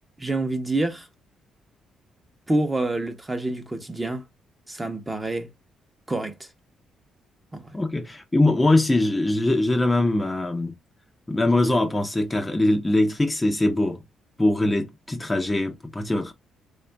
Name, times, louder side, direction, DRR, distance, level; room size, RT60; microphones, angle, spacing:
voice 1, 0.2-1.1 2.5-4.2 4.7-5.5 6.1-6.5 7.5-7.7, right 2 dB, 15° right, 0.9 m, -27 dB
voice 2, 7.7-10.8 11.3-14.0 14.4-16.3, left 2 dB, 15° left, 0.6 m, -22 dB
3.5 x 2.5 x 3.3 m
cardioid pair, 90°, 0 cm